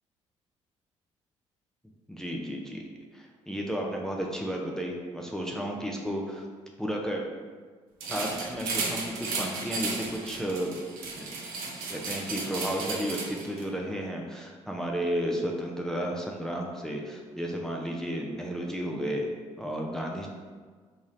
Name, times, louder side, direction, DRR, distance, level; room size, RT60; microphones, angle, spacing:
voice 1, 2.1-2.8 3.1-6.5 6.8-7.2 8.1-10.8 11.2-11.3 11.9-19.3 19.6-20.3, equal, 5° left, -1 dB, 0.6 m, -33 dB
sound 1, 8.0-13.6, right 3 dB, 70° right, 0.7 m, -34 dB
5.0 x 2.6 x 2.5 m, 1.6 s
hypercardioid pair, 45°, 15 cm